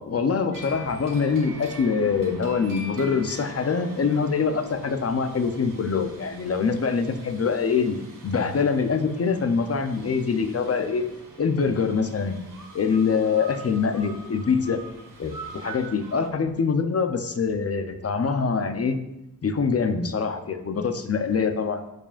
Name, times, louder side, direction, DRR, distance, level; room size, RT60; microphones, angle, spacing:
voice 1, 0.0-11.1 11.4-12.4 12.7-14.8 15.2-19.0 19.4-21.8, left 5 dB, 40° left, 8 dB, 0.6 m, -24 dB
sound 1, 0.5-16.3, right 2 dB, 60° right, 1.5 m, -44 dB
10.5 x 4.9 x 2.4 m, 0.90 s
wide cardioid pair, 115°, 37 cm